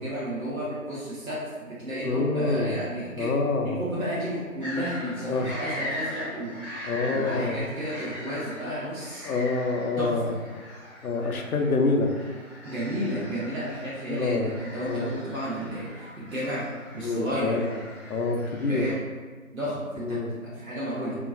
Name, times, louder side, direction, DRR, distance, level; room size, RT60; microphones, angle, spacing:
voice 1, 0.0-3.3 3.6-6.6 7.0-9.3 10.0-10.3 12.6-16.7 16.9-17.6 18.7-19.0 19.5-20.2 20.4-21.2, equal, 75° right, -9 dB, 1.0 m, -32 dB
voice 2, 2.0-2.8 3.2-3.8 5.3-5.5 6.8-7.7 9.2-10.3 11.0-12.1 14.1-14.5 14.8-15.1 17.0-17.8 18.1-18.9 20.0-20.3, left 3 dB, 90° left, 3 dB, 0.5 m, -26 dB
sound 1, 4.6-18.9, left 1 dB, 50° right, 1.3 m, -41 dB
2.9 x 2.4 x 2.5 m, 1.4 s
figure-of-eight pair, 155°, 42 cm